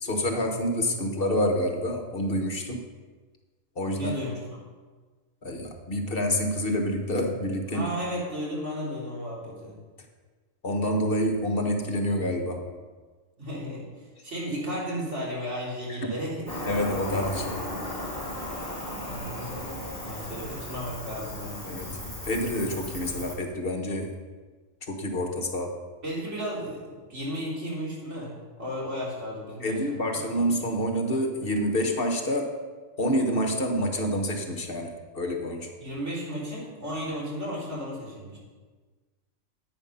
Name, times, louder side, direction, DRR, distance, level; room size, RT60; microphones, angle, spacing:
voice 1, 0.0-2.8 3.8-4.1 5.4-7.9 10.6-12.6 16.0-16.1 16.6-17.6 21.6-24.1 24.9-25.7 29.6-32.5 33.0-35.7, equal, 45° left, 4 dB, 1.5 m, -27 dB
voice 2, 3.9-4.4 7.7-9.8 13.4-16.6 19.0-19.6 20.1-21.7 26.0-30.2 35.8-38.4, equal, 60° right, -6 dB, 3.8 m, -34 dB
Cricket, 16.5-23.3, left 1 dB, 15° left, 2.2 m, -36 dB
10.5 x 9.0 x 5.6 m, 1.4 s
omnidirectional pair, 1.4 m